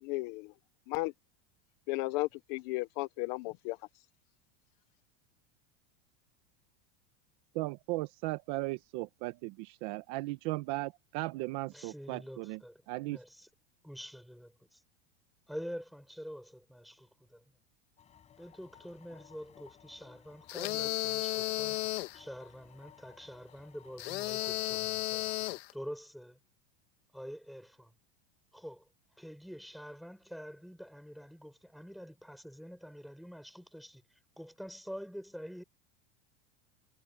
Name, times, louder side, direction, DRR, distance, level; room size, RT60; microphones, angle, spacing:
voice 1, 0.0-0.5 0.9-1.1 1.9-3.8, left 22 dB, 45° left, 0.8 m, -34 dB
voice 2, 7.5-9.5 9.8-12.6 12.9-13.2, right 20 dB, 50° right, 1.2 m, -36 dB
voice 3, 11.7-12.8 13.1-13.5 13.8-14.8 15.5-17.6 18.4-21.8 22.1-25.3 25.7-26.4 27.1-27.9 28.5-28.9 29.2-34.0 34.4-35.6, equal, ahead, 7.0 m, -46 dB
sound 1, 18.0-25.6, left 8 dB, 20° left, 5.5 m, -59 dB
sound 2, 20.5-22.2 24.0-25.7, left 20 dB, 75° left, 1.5 m, -34 dB
supercardioid pair, 160°, 31 cm